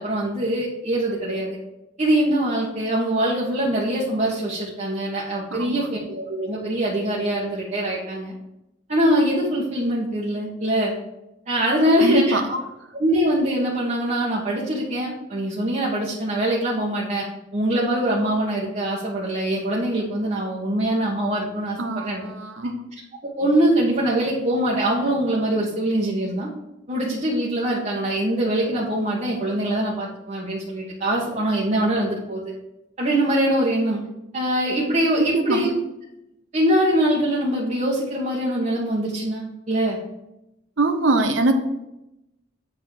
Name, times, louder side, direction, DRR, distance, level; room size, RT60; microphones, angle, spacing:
voice 1, 0.0-1.6 2.0-8.3 8.9-10.9 11.5-12.6 12.9-17.2 17.5-22.3 23.4-26.5 26.9-32.5 33.0-34.0 34.3-35.7 36.5-40.0, right 1 dB, 40° right, -6 dB, 1.6 m, -23 dB
voice 2, 12.0-12.4 21.8-22.8 35.2-35.7 40.8-41.5, right 2 dB, 80° right, 6 dB, 0.8 m, -22 dB
8.6 x 4.1 x 6.7 m, 0.89 s
head